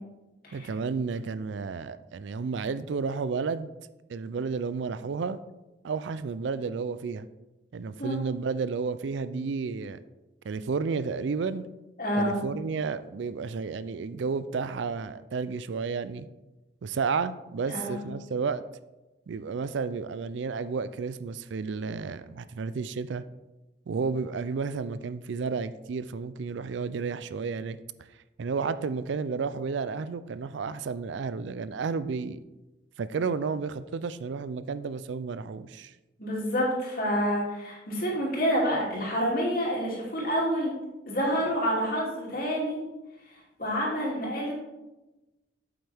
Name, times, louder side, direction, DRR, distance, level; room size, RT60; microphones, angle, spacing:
voice 1, 0.5-3.7 4.1-5.4 5.8-7.3 7.7-10.0 10.4-11.6 12.2-16.3 16.8-18.6 19.3-23.2 23.9-27.8 28.4-32.4 33.0-35.9, right 5 dB, 70° right, 14 dB, 0.4 m, -32 dB
voice 2, 12.0-12.4 17.7-17.9 36.2-40.7 41.1-42.8 43.6-44.5, equal, 50° left, -4 dB, 2.8 m, -28 dB
8.7 x 7.8 x 3.5 m, 1.1 s
head